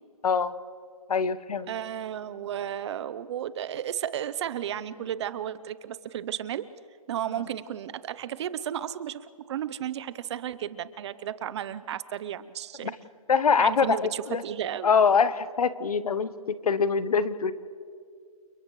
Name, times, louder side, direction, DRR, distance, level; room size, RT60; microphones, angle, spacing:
voice 1, 1.1-1.7 12.8-12.9 13.3-14.4 14.8-16.3 16.6-17.5, left 6 dB, 75° left, 14 dB, 1.1 m, -23 dB
voice 2, 1.7-6.6 7.1-9.2 9.5-12.9 13.6-14.9, right 10 dB, 50° right, 15 dB, 0.8 m, -33 dB
29.5 x 29.5 x 3.2 m, 2.2 s
hypercardioid pair, 140°, 19 cm